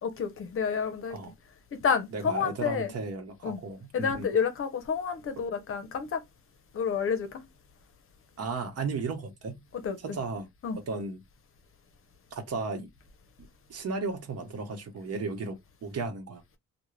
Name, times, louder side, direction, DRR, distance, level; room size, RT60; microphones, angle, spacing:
voice 1, 0.0-1.2 1.7-2.9 3.4-3.6 3.9-6.2 6.7-7.4 9.7-10.2 10.6-10.8, left 6 dB, 45° left, 0.7 m, -29 dB
voice 2, 2.1-4.3 8.4-9.6 10.0-10.5 10.7-11.2 12.3-12.9 13.4-16.4, right 4 dB, 55° right, 0.9 m, -35 dB
2.3 x 2.1 x 3.1 m
cardioid pair, 90°, 30 cm